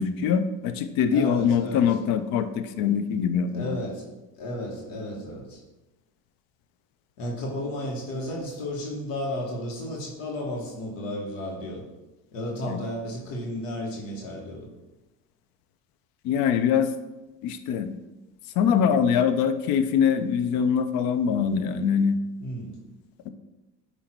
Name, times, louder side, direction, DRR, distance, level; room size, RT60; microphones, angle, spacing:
voice 1, 0.0-3.8 16.2-16.9 17.4-18.0 18.6-22.2, left 7 dB, 65° left, 11 dB, 0.7 m, -23 dB
voice 2, 1.1-2.0 3.5-4.1 4.4-5.6 7.2-11.8 12.3-14.7 22.4-22.8, left 1 dB, 85° left, -2 dB, 1.5 m, -33 dB
8.5 x 2.9 x 4.4 m, 1.0 s
hypercardioid pair, 75°, 37 cm